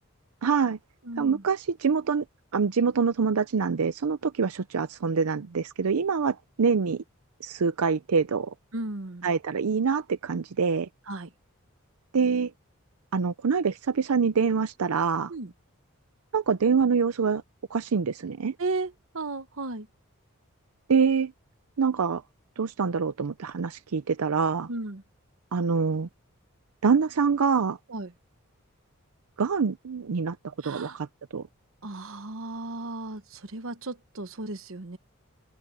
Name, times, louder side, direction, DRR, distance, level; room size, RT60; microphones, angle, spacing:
voice 1, 0.4-0.8 1.2-2.2 2.5-7.0 7.4-8.5 9.2-10.9 12.1-12.5 13.1-15.3 16.3-17.4 17.7-18.5 20.9-21.3 21.8-22.2 22.6-24.7 25.5-26.1 26.8-27.8 29.4-30.4 30.6-31.1 31.3-31.4, right 5 dB, 90° right, 0.6 m, -25 dB
voice 2, 1.0-1.4 8.7-9.3 11.1-11.3 15.3-15.5 18.6-19.9 24.7-25.0 27.9-28.1 30.6-31.0 31.8-35.0, right 2 dB, 65° right, 1.1 m, -35 dB
head